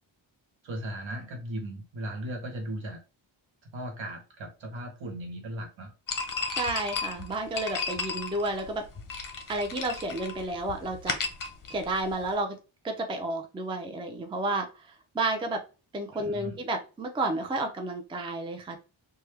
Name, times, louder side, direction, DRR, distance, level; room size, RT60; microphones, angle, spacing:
voice 1, 0.6-3.0 3.7-5.9 16.1-16.6, right 1 dB, 70° right, 3 dB, 1.1 m, -37 dB
sound 1, 6.1-12.3, left 4 dB, 45° left, 0.6 m, -35 dB
voice 2, 6.5-8.9 9.5-11.2 11.7-12.6 12.8-15.6 15.9-18.8, right 2 dB, 10° right, 4 dB, 0.3 m, -31 dB
3.2 x 2.2 x 3.3 m, 0.32 s
wide cardioid pair, 135°, 47 cm